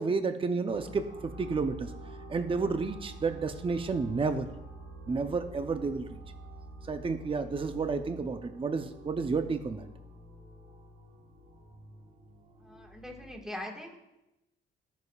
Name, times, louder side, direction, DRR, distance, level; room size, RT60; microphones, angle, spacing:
voice 1, 0.0-1.9 2.3-4.5 5.1-6.2 6.9-9.9, right 4 dB, 25° right, 8 dB, 0.7 m, -31 dB
sound 1, 0.7-13.3, right 1 dB, 55° right, 3.5 m, -47 dB
voice 2, 12.6-14.0, left 1 dB, 5° right, 1 dB, 1.8 m, -42 dB
18.5 x 6.4 x 2.4 m, 0.92 s
cardioid pair, 90°, 20 cm